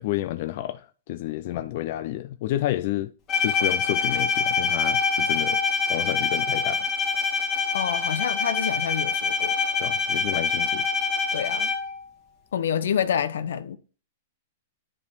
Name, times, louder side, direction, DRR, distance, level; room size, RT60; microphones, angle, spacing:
voice 1, 0.0-3.1 3.4-5.6 5.9-6.9 9.8-10.9, left 14 dB, 50° left, 0.4 m, -30 dB
Bowed string instrument, 3.3-12.0, left 5 dB, 30° left, 1.9 m, -25 dB
voice 2, 7.7-9.6 10.3-10.4 11.3-11.7 12.5-13.8, left 8 dB, 80° left, 0.7 m, -27 dB
9.8 x 3.3 x 4.5 m
hypercardioid pair, 145°, 0 cm